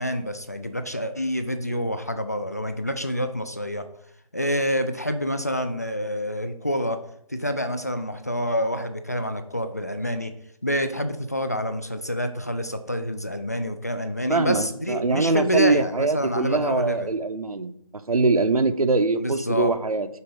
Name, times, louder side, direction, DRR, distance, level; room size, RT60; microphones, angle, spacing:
voice 1, 0.0-3.8 4.3-7.0 7.3-10.3 10.6-17.1 19.2-19.7, equal, 25° left, 8 dB, 0.4 m, -27 dB
voice 2, 14.3-17.7 18.1-20.1, right 3 dB, 80° right, 9 dB, 0.9 m, -23 dB
6.7 x 3.9 x 5.3 m, 0.72 s
figure-of-eight pair, 165°, 19 cm